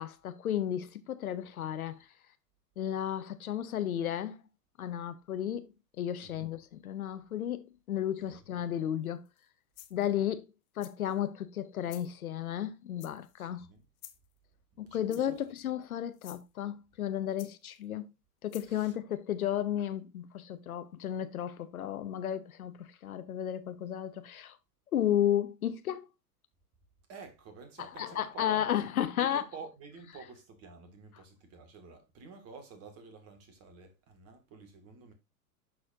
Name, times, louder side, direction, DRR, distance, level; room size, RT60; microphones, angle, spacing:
voice 1, 0.0-2.1 2.8-4.4 4.8-9.2 9.9-10.5 10.8-13.7 14.8-18.1 18.4-24.6 24.9-26.1 28.0-29.4, left 10 dB, 60° left, 0.8 m, -33 dB
sound 1, 9.3-9.4 9.8-10.1 10.8-11.2 11.9-12.1 13.0-13.4 14.0-14.3 15.1-15.5 16.1-16.4 17.4-17.8 18.5-18.8, left 15 dB, 25° left, 0.6 m, -52 dB
voice 2, 13.4-13.8 14.9-15.5 18.6-19.0 27.1-28.6 29.2-35.1, right 5 dB, 30° right, 1.9 m, -50 dB
11.0 x 4.3 x 2.6 m
figure-of-eight pair, 95°, 49 cm